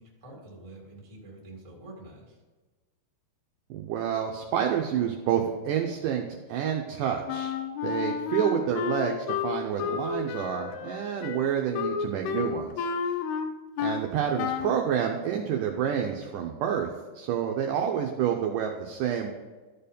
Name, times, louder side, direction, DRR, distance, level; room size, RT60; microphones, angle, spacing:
voice 1, 0.0-2.4, right 2 dB, 15° right, -3 dB, 1.2 m, -47 dB
voice 2, 3.7-6.2 6.5-7.5 7.8-12.9 13.8-19.3, right 9 dB, 80° right, 2 dB, 1.9 m, -28 dB
Wind instrument woodwind instrument, 7.3-14.1 14.4-14.8, left 7 dB, 85° left, 2.6 m, -31 dB
13.5 x 4.6 x 5.2 m, 1.3 s
omnidirectional pair, 4.5 m